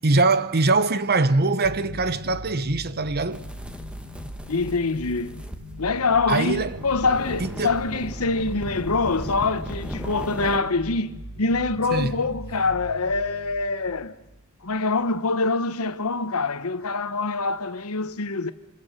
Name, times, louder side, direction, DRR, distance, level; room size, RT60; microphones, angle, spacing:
voice 1, 0.0-3.4 6.3-6.7 7.4-7.8 11.9-12.1, right 3 dB, 45° right, 1.0 m, -22 dB
sound 1, 1.6-14.8, equal, 80° right, 4.6 m, -40 dB
sound 2, 3.3-10.6, equal, 5° right, 1.5 m, -38 dB
voice 2, 4.5-5.4 5.8-14.2 14.6-18.5, left 3 dB, 80° left, 1.1 m, -25 dB
27.0 x 26.0 x 6.6 m
head